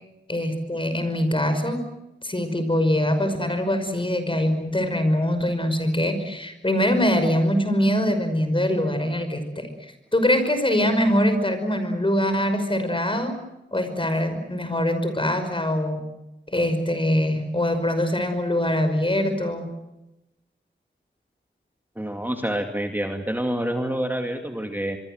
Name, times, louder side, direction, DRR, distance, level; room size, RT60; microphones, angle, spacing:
voice 1, 0.3-1.8 2.2-13.3 13.7-16.0 16.5-19.7, left 1 dB, 25° left, 8 dB, 5.5 m, -23 dB
voice 2, 22.0-25.0, right 1 dB, 10° right, 4 dB, 2.5 m, -27 dB
25.0 x 24.0 x 7.9 m, 0.93 s
wide cardioid pair, 80°, 19 cm